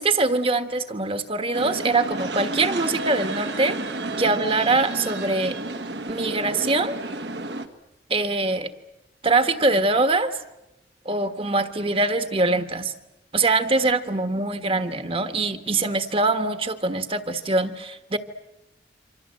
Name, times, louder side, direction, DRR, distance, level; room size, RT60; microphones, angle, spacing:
voice 1, 0.0-3.8 4.2-5.6 6.1-7.0 8.1-8.7 9.2-10.4 11.0-12.9 13.3-18.2, right 3 dB, 30° right, 10 dB, 1.5 m, -23 dB
sound 1, 1.5-7.7, right 2 dB, 70° right, 1.7 m, -31 dB
28.0 x 25.5 x 7.7 m, 0.92 s
head